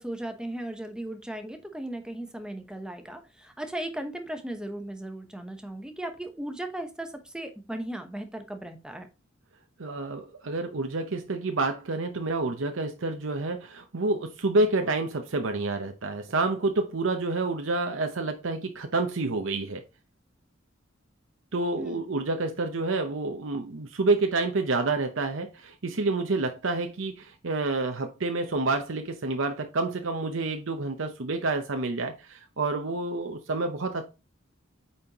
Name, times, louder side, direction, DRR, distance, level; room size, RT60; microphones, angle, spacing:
voice 1, 0.0-9.1 21.8-22.1, right 1 dB, 5° right, 0.9 m, -37 dB
voice 2, 9.8-19.8 21.5-34.0, right 3 dB, 70° right, 0.8 m, -28 dB
8.7 x 4.3 x 2.9 m
head